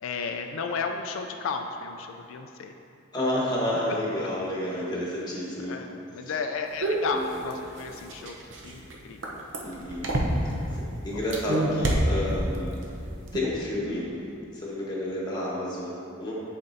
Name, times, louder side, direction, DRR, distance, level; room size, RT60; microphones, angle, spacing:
voice 1, 0.0-2.7 4.7-5.0 5.7-8.4 8.6-9.4, left 5 dB, 80° left, 4 dB, 0.3 m, -33 dB
voice 2, 3.1-5.8 7.1-7.4 9.6-10.1 10.4-12.9 13.3-14.2 14.5-16.3, left 1 dB, 20° left, -6 dB, 1.1 m, -30 dB
sound 1, 6.8-10.7 11.2-12.7 13.1-13.4, right 1 dB, 65° right, 0.7 m, -27 dB
10.5 x 4.3 x 2.7 m, 2.7 s
head